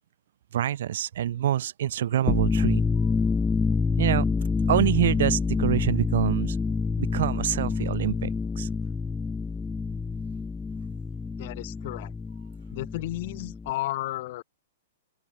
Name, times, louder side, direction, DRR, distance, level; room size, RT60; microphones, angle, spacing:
voice 1, 0.5-2.8 4.0-4.3 4.7-6.6 7.0-8.7, right 11 dB, 65° right, 0.5 m, -26 dB
sound 1, 2.2-13.7, left 4 dB, 10° left, 0.3 m, -27 dB
voice 2, 11.4-12.1 12.7-14.4, left 17 dB, 55° left, 0.8 m, -33 dB
hypercardioid pair, 115°, 0 cm